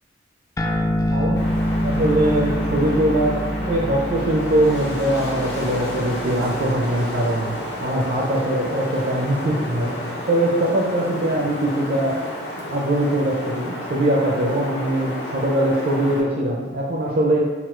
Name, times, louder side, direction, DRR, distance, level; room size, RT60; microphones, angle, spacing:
sound 1, 0.6-7.4, equal, 20° left, 0.3 m, -26 dB
voice 1, 1.1-1.4 1.8-9.9 10.3-12.2 12.5-17.4, right 1 dB, 55° right, -2 dB, 0.5 m, -22 dB
Wind, 1.4-16.2, left 1 dB, 65° left, 0.9 m, -31 dB
4.2 x 2.3 x 4.3 m, 1.4 s
head